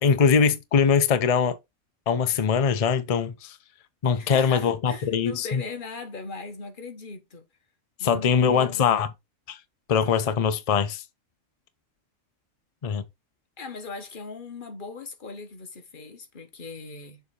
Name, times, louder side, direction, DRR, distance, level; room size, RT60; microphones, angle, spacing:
voice 1, 0.0-1.6 2.1-3.6 4.0-5.6 8.0-9.1 9.5-9.6 9.9-11.0 12.8-13.0, left 6 dB, 60° left, 0.3 m, -22 dB
voice 2, 4.2-7.4 8.0-8.9 13.6-17.2, left 4 dB, 40° left, 1.1 m, -39 dB
6.8 x 3.4 x 4.3 m
omnidirectional pair, 1.4 m